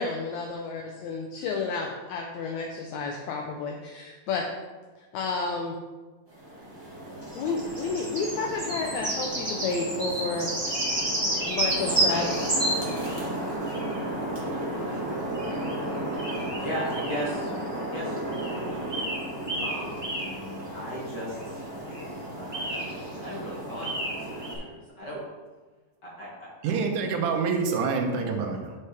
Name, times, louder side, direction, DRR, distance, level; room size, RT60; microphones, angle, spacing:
voice 1, 0.0-4.5 5.1-5.8 7.3-10.5 11.2-12.3, left 4 dB, 75° left, 1 dB, 1.7 m, -31 dB
sound 1, 6.3-24.5, right 1 dB, 20° right, 0.7 m, -31 dB
voice 2, 14.5-15.0 16.3-19.1 19.6-21.7 22.4-22.9 23.2-25.2 26.0-26.7, equal, 40° left, -6 dB, 1.8 m, -38 dB
voice 3, 26.6-28.8, right 5 dB, 80° right, 2 dB, 2.3 m, -27 dB
8.2 x 5.5 x 3.4 m, 1.3 s
omnidirectional pair, 3.8 m